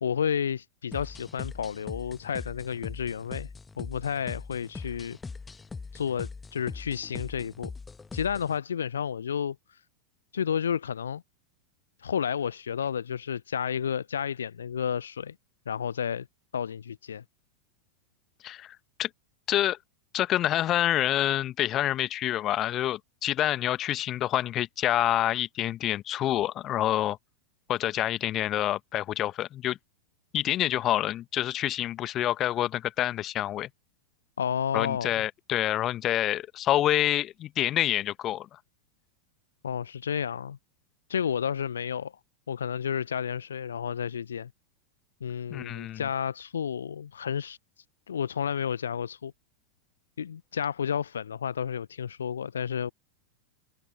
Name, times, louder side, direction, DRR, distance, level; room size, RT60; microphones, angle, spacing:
voice 1, 0.0-3.5 3.8-5.2 5.9-7.7 8.1-9.6 10.3-11.2 12.0-15.3 15.7-16.3 16.5-17.2 34.4-35.1 39.6-40.6 41.1-42.1 42.5-44.5 45.2-47.6 48.1-49.3 50.2-52.9, left 8 dB, 70° left, 0.7 m, -31 dB
sound 1, 0.9-8.6, left 4 dB, 15° left, 1.3 m, -41 dB
voice 2, 18.4-19.1 19.5-19.8 20.1-27.2 27.7-29.8 30.3-33.7 34.7-38.5 45.5-46.0, left 13 dB, 30° left, 1.2 m, -27 dB
figure-of-eight pair, 90°, 0 cm